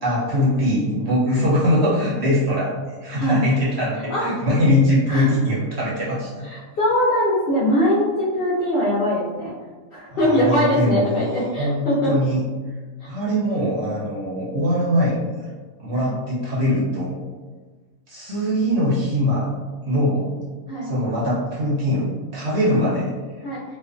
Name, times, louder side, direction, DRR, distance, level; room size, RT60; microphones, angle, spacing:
voice 1, 0.0-6.4 10.1-11.1 11.6-12.4 13.0-15.5 15.8-17.2 18.1-19.5 19.8-20.3 20.8-23.2, equal, 60° right, -7 dB, 0.8 m, -22 dB
voice 2, 6.5-9.5 9.9-12.1 15.9-16.1 20.7-20.9 23.4-23.6, equal, 60° left, -8 dB, 0.6 m, -21 dB
2.4 x 2.2 x 2.4 m, 1.4 s
omnidirectional pair, 1.5 m